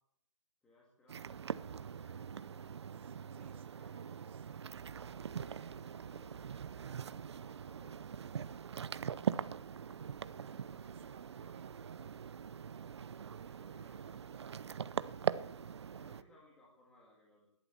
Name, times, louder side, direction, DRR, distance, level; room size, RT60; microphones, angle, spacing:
voice 1, 0.6-2.5 3.3-4.1 5.7-11.5 13.3-14.9 16.0-17.5, left 1 dB, 5° left, -4 dB, 1.9 m, -66 dB
sound 1, 1.1-16.2, right 7 dB, 60° right, 0.6 m, -42 dB
voice 2, 2.9-4.8 5.4-6.0 10.8-12.2 13.0-14.7, right 9 dB, 25° right, 11 dB, 0.8 m, -62 dB
16.5 x 11.5 x 4.4 m, 0.75 s
hypercardioid pair, 170°, 16 cm